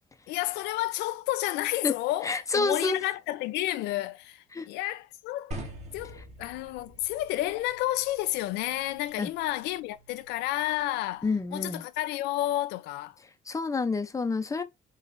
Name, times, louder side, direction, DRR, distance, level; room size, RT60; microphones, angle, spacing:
voice 1, 0.3-5.5 5.9-13.2, left 15 dB, 85° left, 0.4 m, -31 dB
voice 2, 2.2-3.0 4.5-4.7 9.2-9.3 11.2-11.8 13.5-14.6, left 3 dB, 20° left, 0.7 m, -28 dB
sound 1, 5.5-11.6, right 1 dB, 40° right, 2.1 m, -46 dB
5.4 x 3.1 x 2.6 m
cardioid pair, 110°, 17 cm